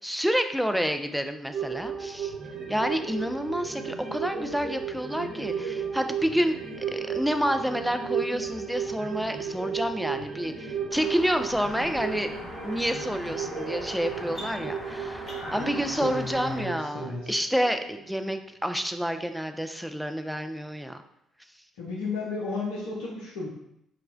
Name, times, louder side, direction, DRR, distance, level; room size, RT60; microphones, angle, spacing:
voice 1, 0.0-2.3 2.7-12.3 12.6-21.0, equal, ahead, 7 dB, 0.3 m, -29 dB
sound 1, 1.5-18.3 18.7-18.8, right 6 dB, 50° right, 0.5 m, -34 dB
sound 2, 10.9-16.6, equal, 40° left, 1.4 m, -41 dB
voice 2, 15.5-17.3 21.8-23.5, left 3 dB, 75° left, -5 dB, 0.5 m, -34 dB
4.1 x 2.1 x 2.6 m, 0.77 s
hypercardioid pair, 45°, 0 cm